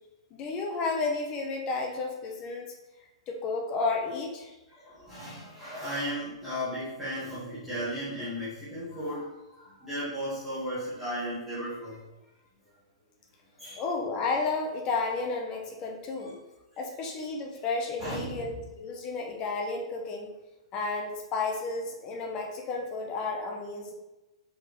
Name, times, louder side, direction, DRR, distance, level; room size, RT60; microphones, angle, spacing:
voice 1, 0.3-2.7 3.3-4.6 13.8-16.4 16.8-20.3 20.7-23.9, left 3 dB, 20° left, 2 dB, 0.6 m, -32 dB
voice 2, 4.8-12.0 13.6-13.8 16.2-16.3 18.0-18.5, equal, 5° right, -15 dB, 1.4 m, -35 dB
4.6 x 3.7 x 3.1 m, 1.0 s
hypercardioid pair, 165°, 3 cm